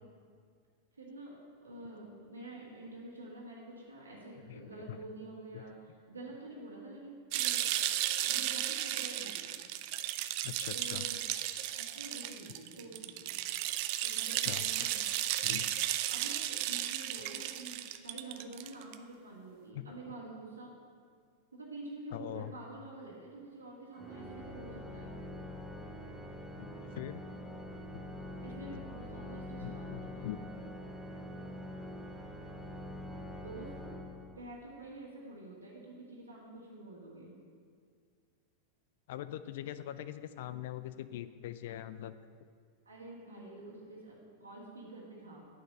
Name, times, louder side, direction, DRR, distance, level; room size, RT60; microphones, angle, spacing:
voice 1, 0.9-9.6 10.7-11.2 11.7-13.4 14.0-15.0 16.1-17.8 18.0-20.7 21.5-25.1 28.4-30.3 33.0-33.7 34.4-37.3 42.9-45.4, right 2 dB, 80° right, -4 dB, 2.0 m, -48 dB
voice 2, 4.5-5.0 5.5-5.6 10.4-11.0 14.5-14.6 15.4-15.7 19.7-19.8 22.1-22.5 26.6-27.2 27.9-28.0 28.7-28.8 29.6-30.5 39.1-42.1, left 13 dB, 55° left, 13 dB, 0.4 m, -42 dB
sound 1, 7.3-18.9, right 13 dB, 45° right, 0.4 m, -34 dB
Organ, 23.9-34.7, left 1 dB, ahead, 0.9 m, -45 dB
9.0 x 4.8 x 7.6 m, 2.1 s
figure-of-eight pair, 90°, 0 cm